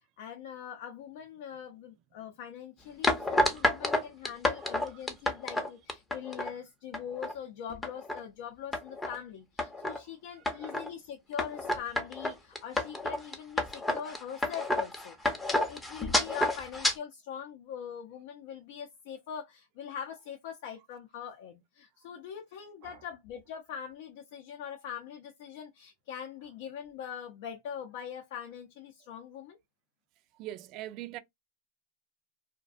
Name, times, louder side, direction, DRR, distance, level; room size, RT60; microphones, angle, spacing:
voice 1, 0.2-29.6, left 8 dB, 65° left, 0.5 m, -42 dB
sound 1, 3.0-6.5 6.9-7.3 7.7-8.2 8.7-9.2 9.6-10.0 10.5-10.9 11.4-16.9, left 1 dB, 10° left, 0.6 m, -30 dB
voice 2, 10.4-10.8 22.8-23.0 30.4-31.2, right 14 dB, 45° right, 0.4 m, -43 dB
2.4 x 2.2 x 2.3 m
supercardioid pair, 125°, 0 cm